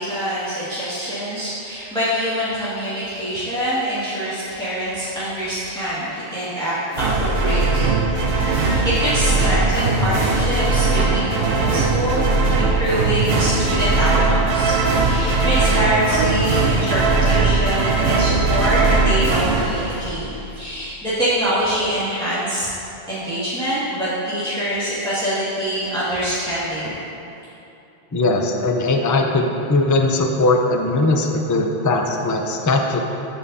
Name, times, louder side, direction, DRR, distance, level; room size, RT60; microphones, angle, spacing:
voice 1, 0.0-14.7 15.0-22.7 23.1-26.9, equal, 5° left, -14 dB, 1.9 m, -25 dB
sound 1, 6.9-20.6, right 3 dB, 65° right, 0.9 m, -19 dB
voice 2, 10.0-10.3 28.1-33.0, left 2 dB, 25° left, 2 dB, 0.4 m, -20 dB
15.0 x 5.5 x 2.7 m, 2.8 s
omnidirectional pair, 1.1 m